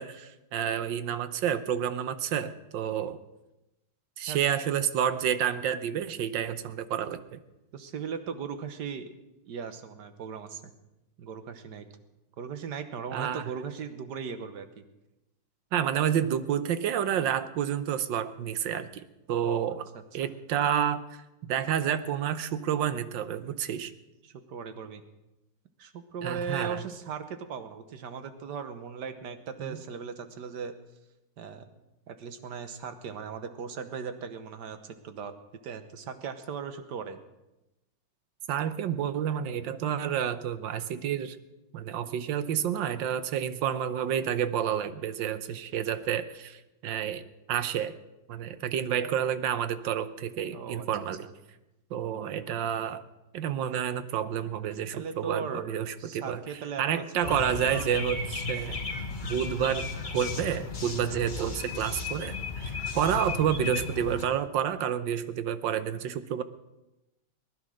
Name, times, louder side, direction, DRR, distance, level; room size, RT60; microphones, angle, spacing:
voice 1, 0.0-3.2 4.2-7.4 13.1-13.5 15.7-19.0 19.3-19.9 20.1-21.0 21.5-23.9 26.2-26.8 29.6-29.8 38.5-41.4 41.7-47.2 47.5-47.9 48.3-51.3 51.9-53.0 53.3-56.4 56.8-58.8 59.2-66.4, right 9 dB, 85° right, 12 dB, 1.6 m, -29 dB
voice 2, 7.7-9.1 9.5-10.7 11.2-11.9 12.4-14.8 19.4-19.7 24.2-25.0 25.8-30.7 31.4-31.7 32.1-35.3 35.6-37.2 50.5-50.9 51.2-51.3 54.9-57.9, right 6 dB, 70° right, 9 dB, 1.7 m, -38 dB
sound 1, 57.2-64.2, left 4 dB, 30° left, 1.3 m, -35 dB
20.0 x 11.0 x 6.4 m, 0.96 s
omnidirectional pair, 1.9 m